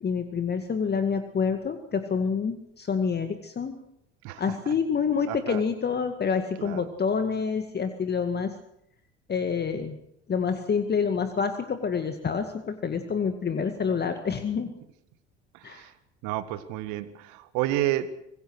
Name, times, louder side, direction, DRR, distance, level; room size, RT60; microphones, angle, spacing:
voice 1, 0.0-3.8 4.4-8.5 9.3-10.0 10.3-14.7 15.6-15.9, left 6 dB, 30° left, 8 dB, 2.0 m, -27 dB
voice 2, 5.3-5.6 6.6-6.8 15.7-15.8 16.2-17.1 17.5-18.1, right 14 dB, 60° right, 12 dB, 2.0 m, -29 dB
25.5 x 20.5 x 6.4 m, 0.76 s
figure-of-eight pair, 65°, 34 cm